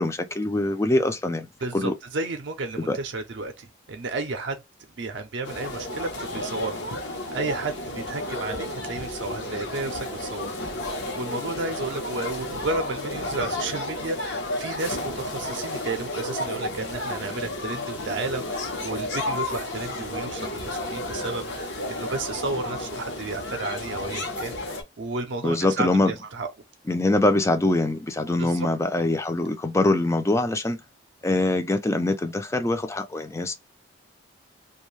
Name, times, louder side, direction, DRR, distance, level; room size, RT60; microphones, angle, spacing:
voice 1, 0.0-1.5 1.7-1.9 2.8-3.0 25.4-26.1 26.9-30.8 31.2-33.5, left 2 dB, 15° left, 0.3 m, -23 dB
voice 2, 1.6-4.6 5.0-10.5 11.2-26.5 28.4-28.7, right 3 dB, 60° right, 0.5 m, -32 dB
sound 1, 5.4-24.8, left 1 dB, 60° left, 0.9 m, -32 dB
2.6 x 2.3 x 3.1 m
head